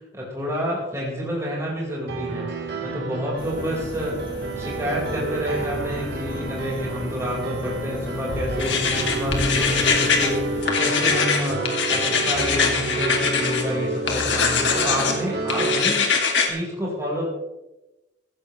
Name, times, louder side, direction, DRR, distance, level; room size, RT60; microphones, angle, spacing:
voice 1, 0.1-2.5 2.8-16.1 16.4-17.2, equal, 15° right, -5 dB, 4.8 m, -28 dB
Piano, 2.1-15.8, right 2 dB, 60° right, 2.6 m, -30 dB
sound 1, 3.4-10.6, equal, 50° left, 4.2 m, -34 dB
sound 2, 8.6-10.3 10.6-13.6 14.1-15.2 15.5-16.5, left 5 dB, 80° left, 2.3 m, -22 dB
16.0 x 15.0 x 3.2 m, 1.0 s
head